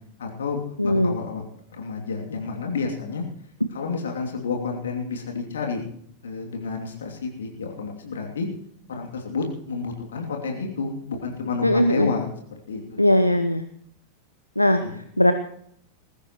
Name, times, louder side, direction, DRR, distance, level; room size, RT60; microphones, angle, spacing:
voice 1, 0.2-1.4 1.7-3.2 3.7-5.8 6.2-8.5 8.9-12.3 12.7-13.0 14.8-15.0, left 4 dB, 65° left, 1 dB, 2.8 m, -30 dB
voice 2, 0.8-1.2 11.6-12.1 13.0-13.6 14.6-14.8 15.2-15.3, left 1 dB, 85° left, 9 dB, 0.7 m, -19 dB
20.0 x 15.5 x 3.1 m, 0.66 s
figure-of-eight pair, 90°, 0 cm